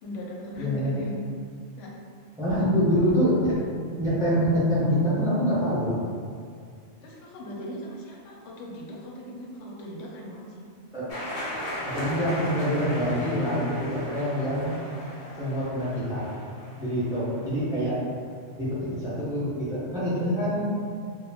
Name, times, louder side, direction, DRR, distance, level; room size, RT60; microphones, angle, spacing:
voice 1, 0.0-1.9 7.0-10.6 19.1-19.2, left 1 dB, 85° left, -2 dB, 0.9 m, -39 dB
voice 2, 0.6-1.1 2.4-3.6 4.0-6.0 10.9-11.1 11.8-14.8 15.4-16.3 16.8-18.0 18.6-20.6, equal, 5° right, -9 dB, 0.5 m, -25 dB
sound 1, 11.1-17.7, equal, 55° left, 0.4 m, -37 dB
2.2 x 2.0 x 3.3 m, 2.2 s
omnidirectional pair, 1.2 m